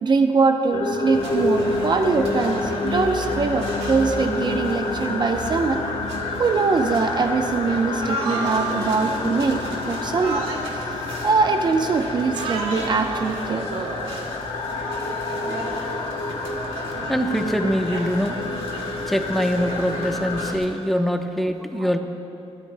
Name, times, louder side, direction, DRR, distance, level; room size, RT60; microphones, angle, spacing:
voice 1, 0.0-5.8 6.4-10.9 11.2-13.9 21.8-21.9, right 4 dB, 45° right, 6 dB, 0.7 m, -22 dB
sound 1, 0.7-20.5, left 3 dB, 60° left, 1.0 m, -29 dB
sound 2, 1.1-20.7, right 2 dB, 75° right, 2.1 m, -33 dB
voice 2, 17.1-18.4 19.1-22.0, equal, ahead, 4 dB, 0.9 m, -23 dB
26.0 x 13.5 x 2.2 m, 3.0 s
cardioid pair, 100°, 11 cm